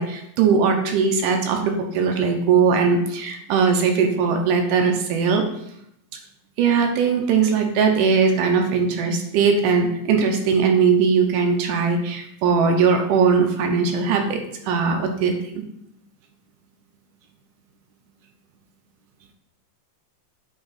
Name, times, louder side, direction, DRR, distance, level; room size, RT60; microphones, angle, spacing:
voice 1, 0.0-5.4 6.6-14.4 14.7-15.6, right 5 dB, 80° right, 3 dB, 2.3 m, -20 dB
8.5 x 3.5 x 4.1 m, 0.75 s
omnidirectional pair, 3.8 m